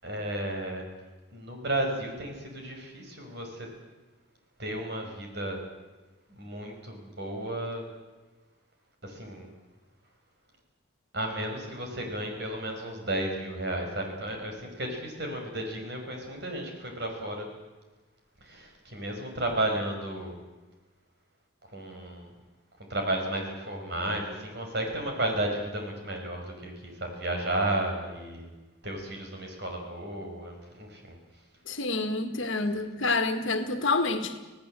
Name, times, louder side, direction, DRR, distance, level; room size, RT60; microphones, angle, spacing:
voice 1, 0.0-0.9 1.3-3.7 4.6-5.6 6.3-7.8 9.0-9.5 11.1-17.5 18.4-20.4 21.7-22.3 22.8-28.5 28.8-31.2, right 1 dB, 55° right, 5.5 m, -33 dB
voice 2, 31.7-34.4, left 3 dB, 70° left, 1.9 m, -28 dB
26.5 x 17.5 x 7.8 m
head